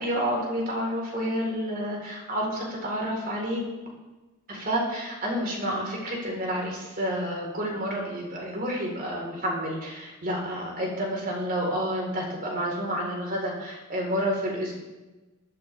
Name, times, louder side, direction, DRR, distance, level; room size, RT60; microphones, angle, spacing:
voice 1, 0.0-3.7 4.5-14.7, equal, 40° right, -1 dB, 4.4 m, -29 dB
19.0 x 13.5 x 3.6 m, 1.1 s
head